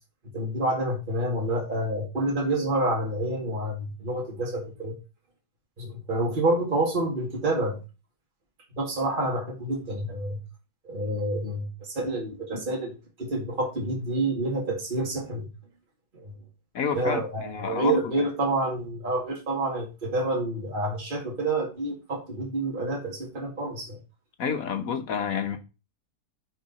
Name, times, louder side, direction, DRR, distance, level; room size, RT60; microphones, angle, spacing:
voice 1, 0.3-4.9 5.8-7.8 8.7-10.4 10.8-15.5 16.1-16.3 16.9-24.0, right 2 dB, 30° right, 2.2 m, -28 dB
voice 2, 16.7-18.0 24.4-25.6, left 6 dB, 60° left, 1.3 m, -29 dB
9.6 x 4.7 x 4.1 m
omnidirectional pair, 1.9 m